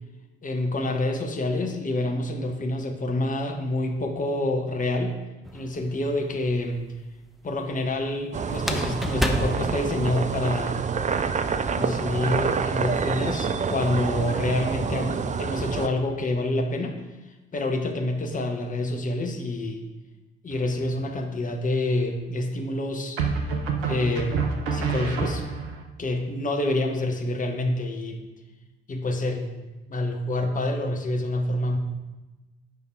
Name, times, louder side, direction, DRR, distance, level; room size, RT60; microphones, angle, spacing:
voice 1, 0.4-5.2 5.5-6.8 7.4-10.8 11.8-17.0 17.5-19.8 20.4-23.2 23.9-25.4 26.0-28.3 28.9-29.6 29.9-31.8, left 1 dB, 25° left, 3 dB, 1.3 m, -27 dB
sound 1, 5.5-6.1 8.5-10.5, equal, ahead, 0.9 m, -29 dB
sound 2, 8.3-15.9, right 5 dB, 25° right, 0.5 m, -27 dB
sound 3, 20.5-21.1 23.2-25.8, right 5 dB, 70° right, 0.9 m, -28 dB
8.5 x 5.1 x 4.7 m, 1.1 s
figure-of-eight pair, 45°, 31 cm